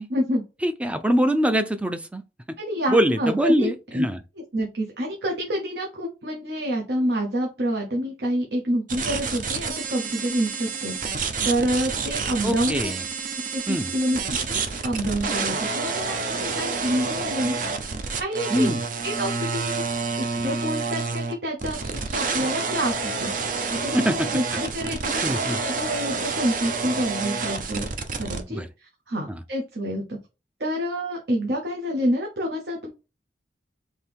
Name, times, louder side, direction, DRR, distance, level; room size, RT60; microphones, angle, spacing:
voice 1, 0.1-0.4 2.6-4.1 4.5-12.9 13.5-17.9 18.2-18.7 19.0-19.8 20.2-27.9 28.2-30.2 30.6-32.9, equal, 65° right, 1.0 m, -28 dB
voice 2, 0.6-2.2 2.9-4.2 12.4-13.0 13.7-13.9 18.5-18.8 23.9-24.3 25.2-25.6 28.5-28.7 29.3-29.4, equal, 5° right, 0.4 m, -23 dB
sound 1, 8.9-28.4, right 4 dB, 50° right, 0.6 m, -28 dB
4.3 x 2.9 x 3.5 m
head